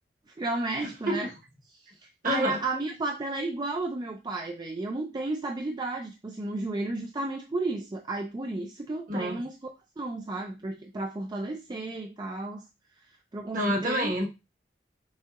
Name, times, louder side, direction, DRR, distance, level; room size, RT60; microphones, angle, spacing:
voice 1, 0.4-1.3 2.0-9.5 10.0-12.6 13.3-14.1, right 2 dB, 25° right, 0.4 m, -33 dB
voice 2, 2.2-2.6 9.1-9.4 13.5-14.3, equal, 50° right, 1.1 m, -28 dB
6.2 x 2.8 x 2.4 m
head